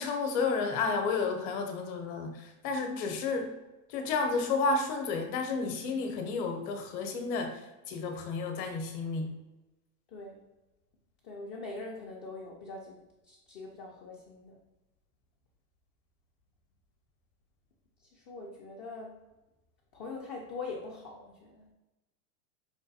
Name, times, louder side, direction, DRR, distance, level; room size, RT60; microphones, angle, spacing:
voice 1, 0.0-3.5 3.9-7.6 7.9-9.3, left 4 dB, 45° left, 5 dB, 0.8 m, -31 dB
voice 2, 10.1-10.4 11.2-14.6 18.1-19.1 19.9-21.6, left 3 dB, 30° left, -1 dB, 0.3 m, -43 dB
5.0 x 2.2 x 2.6 m, 1.1 s
supercardioid pair, 130°, 45 cm